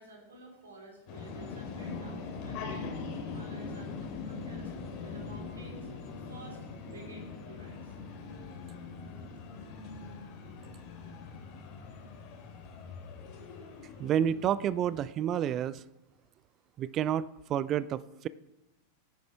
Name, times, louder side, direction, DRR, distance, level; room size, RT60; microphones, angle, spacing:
voice 1, 0.0-4.7 5.0-5.9 6.2-6.6 6.9-7.9, right 2 dB, 70° right, 0 dB, 3.6 m, -51 dB
sound 1, 1.1-15.0, left 4 dB, 40° left, 2.7 m, -42 dB
voice 2, 14.0-15.8 16.8-18.3, right 10 dB, 30° right, 19 dB, 0.4 m, -30 dB
18.0 x 9.2 x 3.4 m, 0.91 s
figure-of-eight pair, 90°, 0 cm